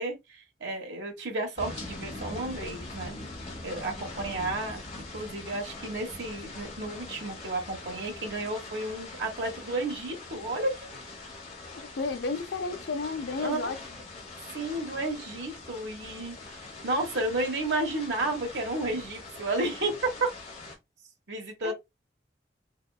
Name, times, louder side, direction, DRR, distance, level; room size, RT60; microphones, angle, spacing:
voice 1, 0.0-3.1 3.6-4.8 5.1-10.7 13.4-13.7 14.5-16.5 16.8-20.3 21.3-21.7, right 2 dB, 85° right, 1.3 m, -32 dB
sound 1, 1.6-20.8, left 2 dB, 35° left, 1.1 m, -43 dB
voice 2, 11.9-13.8 21.6-21.7, left 4 dB, 75° left, 0.5 m, -32 dB
3.5 x 3.5 x 2.3 m
head